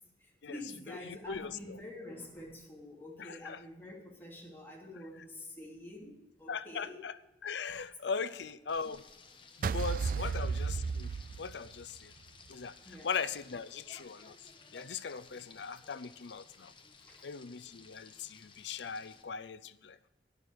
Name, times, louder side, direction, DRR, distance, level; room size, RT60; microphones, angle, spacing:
voice 1, 0.2-7.0 8.2-8.3 10.1-10.3 12.8-13.1 17.0-17.3, left 1 dB, 15° left, -2 dB, 2.7 m, -47 dB
voice 2, 1.1-1.8 3.2-3.6 6.5-7.1 7.4-9.0 9.6-11.1 11.4-12.1 12.5-12.7 13.0-14.3 14.7-16.7 17.2-20.1, left 5 dB, 80° left, 13 dB, 0.6 m, -39 dB
Frying (food), 8.7-19.2, left 4 dB, 30° left, 1.1 m, -57 dB
sound 1, 9.6-12.0, right 5 dB, 50° right, 0.3 m, -33 dB
12.0 x 10.5 x 4.7 m, 0.95 s
head